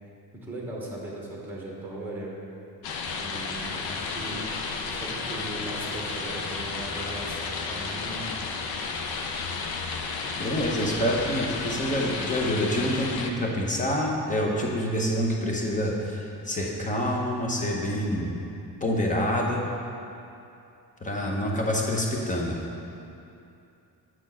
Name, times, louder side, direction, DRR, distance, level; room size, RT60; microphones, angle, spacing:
voice 1, 0.3-2.4 3.2-8.3, right 1 dB, 5° right, -3 dB, 1.2 m, -38 dB
sound 1, 2.8-13.3, left 4 dB, 70° left, 0.7 m, -32 dB
voice 2, 10.4-18.4 18.8-19.6 21.0-22.6, equal, 20° left, -1 dB, 0.9 m, -27 dB
7.5 x 4.3 x 5.6 m, 2.7 s
cardioid pair, 150°, 39 cm